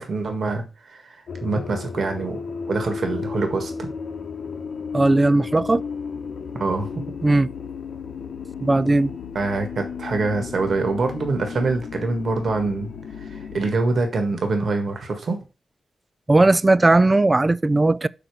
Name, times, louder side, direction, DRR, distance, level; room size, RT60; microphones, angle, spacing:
voice 1, 0.0-2.4 2.7-3.9 6.5-6.9 9.3-12.9 13.2-15.4, right 3 dB, 70° right, 1.6 m, -25 dB
sound 1, 1.3-13.7, left 6 dB, 85° left, 1.0 m, -34 dB
voice 2, 4.9-5.8 7.2-7.5 8.6-9.1 16.3-18.1, right 2 dB, 25° right, 0.3 m, -17 dB
5.9 x 5.2 x 6.0 m
wide cardioid pair, 100°, 0 cm